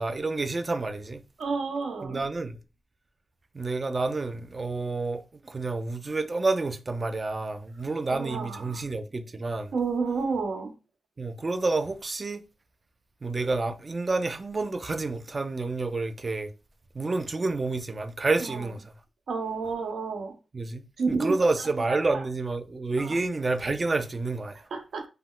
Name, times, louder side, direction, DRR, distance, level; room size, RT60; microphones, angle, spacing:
voice 1, 0.0-1.2 2.0-2.6 3.5-9.7 11.2-12.4 13.2-16.5 16.9-18.8 20.5-24.7, right 3 dB, 30° right, 0.3 m, -29 dB
voice 2, 1.4-2.2 8.1-8.9 9.7-10.7 18.4-18.6 19.3-20.3 21.0-21.5 21.9-22.2 23.0-23.2 24.7-25.0, right 4 dB, 75° right, 0.7 m, -30 dB
2.3 x 2.1 x 3.6 m
wide cardioid pair, 105°, 0 cm